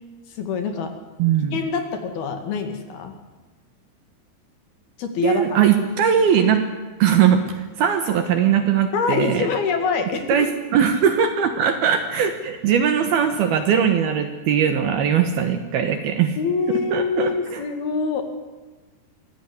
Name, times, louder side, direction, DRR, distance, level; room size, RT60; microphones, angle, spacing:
voice 1, 0.3-0.9 1.5-3.1 5.0-5.6 8.9-10.4 16.4-18.2, left 5 dB, 60° left, 7 dB, 3.6 m, -25 dB
voice 2, 1.2-1.6 5.2-6.6 7.0-9.5 10.3-10.5 10.7-16.4 16.9-17.6, right 8 dB, 65° right, 8 dB, 2.8 m, -20 dB
24.0 x 16.5 x 9.7 m, 1.3 s
omnidirectional pair, 5.5 m